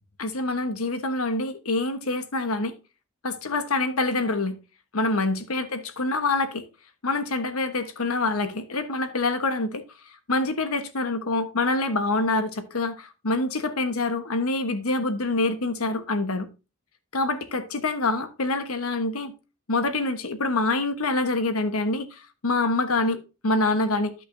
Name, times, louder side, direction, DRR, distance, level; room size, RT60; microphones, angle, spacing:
voice 1, 0.2-2.7 3.2-4.6 4.9-6.7 7.0-9.8 10.3-16.5 17.1-19.3 19.7-24.1, left 2 dB, 90° left, 1.2 m, -26 dB
13.5 x 6.0 x 2.7 m
head